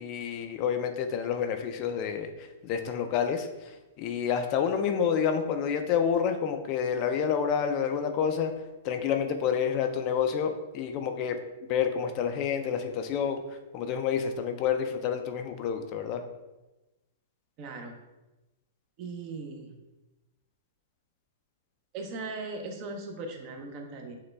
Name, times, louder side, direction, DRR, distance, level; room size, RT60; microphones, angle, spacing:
voice 1, 0.0-8.5 8.8-11.4 11.7-16.2, left 7 dB, 35° left, 7 dB, 0.3 m, -29 dB
voice 2, 17.6-17.9 19.0-19.7 21.9-24.1, right 3 dB, 35° right, 4 dB, 0.6 m, -38 dB
6.4 x 2.2 x 3.3 m, 1.1 s
hypercardioid pair, 150°, 0 cm